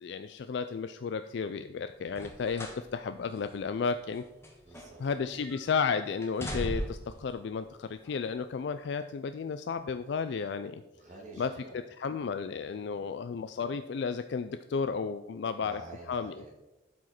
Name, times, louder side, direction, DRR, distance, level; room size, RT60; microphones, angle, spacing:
voice 1, 0.0-4.2 5.0-10.8 11.4-11.5 12.0-15.8 16.1-16.4, left 5 dB, 60° left, 10 dB, 0.3 m, -33 dB
sound 1, 2.1-2.9 3.2-3.4 4.1-5.2 5.4-5.8 6.2-7.1 8.0-8.1, equal, 15° left, 1.2 m, -38 dB
voice 2, 4.6-5.1 10.9-11.8 12.6-13.1 15.6-16.5, right 1 dB, 40° right, -1 dB, 2.3 m, -49 dB
12.0 x 5.0 x 4.3 m, 1.0 s
head